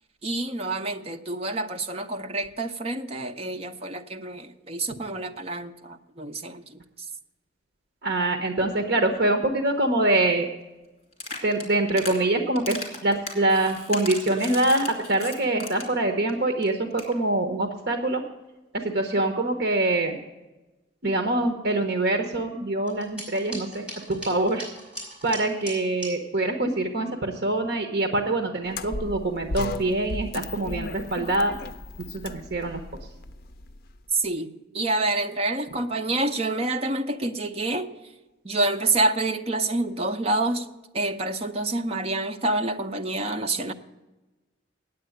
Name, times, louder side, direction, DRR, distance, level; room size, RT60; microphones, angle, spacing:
voice 1, 0.2-6.8 34.1-37.9 38.4-40.7 40.9-43.7, right 2 dB, 35° right, 0.8 m, -27 dB
voice 2, 8.0-10.5 11.4-18.2 18.7-20.2 21.0-24.7 25.2-31.5 32.1-32.8, right 2 dB, 60° right, 1.0 m, -24 dB
sound 1, 11.1-12.2 12.6-16.0 16.3-16.4 16.6-16.7 16.9-17.1, left 2 dB, 35° left, 2.8 m, -36 dB
sound 2, 22.9-26.1, right 1 dB, 5° right, 5.0 m, -39 dB
sound 3, 28.7-33.9, left 2 dB, 55° left, 0.5 m, -35 dB
9.3 x 8.5 x 7.9 m
head